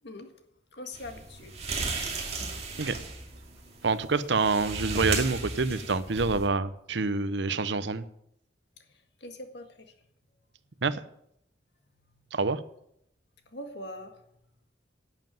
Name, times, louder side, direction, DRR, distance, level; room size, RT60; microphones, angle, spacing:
voice 1, 0.0-0.4 0.7-1.6 2.9-3.1 8.8-9.9 12.1-12.4 13.4-14.3, left 1 dB, 65° left, 6 dB, 1.7 m, -44 dB
sound 1, 0.9-6.5, right 3 dB, 35° right, 2.5 m, -35 dB
voice 2, 3.8-8.0 10.8-11.0 12.3-12.6, right 4 dB, 70° right, 14 dB, 0.8 m, -27 dB
11.0 x 7.6 x 9.2 m, 0.75 s
head